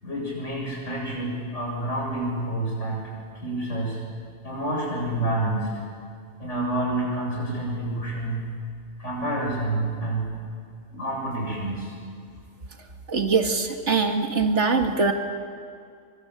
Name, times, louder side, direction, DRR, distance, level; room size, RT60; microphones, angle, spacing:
voice 1, 0.0-3.1 3.4-4.0 4.4-5.8 6.4-8.5 9.0-10.3 10.9-12.0, right 1 dB, 80° left, -3 dB, 8.2 m, -28 dB
voice 2, 13.1-15.1, right 4 dB, 75° right, 5 dB, 2.2 m, -22 dB
23.5 x 23.0 x 9.0 m, 2.2 s
omnidirectional pair, 1.2 m